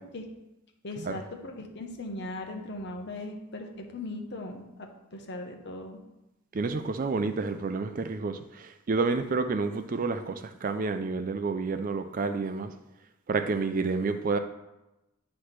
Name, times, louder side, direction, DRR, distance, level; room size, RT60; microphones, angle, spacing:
voice 1, 0.8-6.0, left 2 dB, 50° left, 1.0 m, -39 dB
voice 2, 6.5-12.7 13.3-14.4, right 4 dB, 40° right, 0.4 m, -29 dB
9.6 x 3.2 x 5.8 m
head